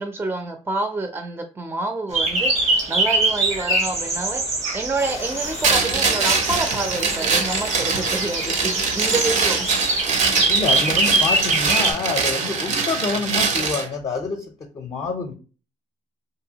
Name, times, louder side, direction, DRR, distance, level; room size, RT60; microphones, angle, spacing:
voice 1, 0.0-9.7, right 2 dB, 15° right, 6 dB, 0.4 m, -28 dB
sound 1, 2.1-11.9, right 2 dB, 85° right, 1.0 m, -23 dB
sound 2, 5.0-10.5, left 7 dB, 85° left, 0.4 m, -38 dB
sound 3, 5.6-13.9, right 5 dB, 65° right, 0.6 m, -23 dB
voice 2, 10.5-14.4 14.7-15.3, left 4 dB, 40° left, 2 dB, 0.5 m, -27 dB
2.8 x 2.3 x 2.8 m, 0.34 s
cardioid pair, 85°, 13 cm